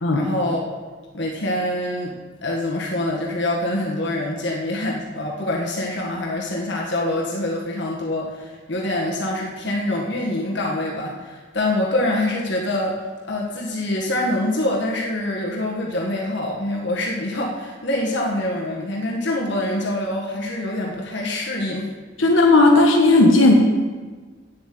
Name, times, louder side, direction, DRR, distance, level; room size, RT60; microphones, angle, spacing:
voice 1, 0.1-0.7 1.1-2.1 2.4-13.0 13.2-21.9, left 1 dB, 60° left, -2 dB, 1.6 m, -25 dB
voice 2, 22.2-23.6, left 2 dB, 80° left, 1 dB, 1.2 m, -14 dB
8.7 x 7.5 x 7.6 m, 1.4 s
head